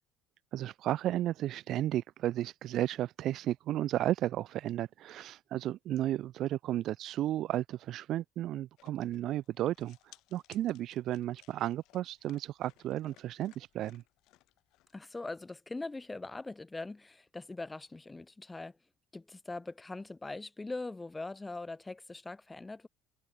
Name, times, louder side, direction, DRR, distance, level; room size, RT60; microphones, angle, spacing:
voice 1, 0.5-14.0, right 13 dB, 60° right, 0.9 m, -33 dB
sound 1, 8.8-15.0, left 18 dB, 70° left, 4.3 m, -63 dB
voice 2, 14.9-18.8 19.1-22.9, left 2 dB, 20° left, 4.7 m, -42 dB
hypercardioid pair, 60°, 0 cm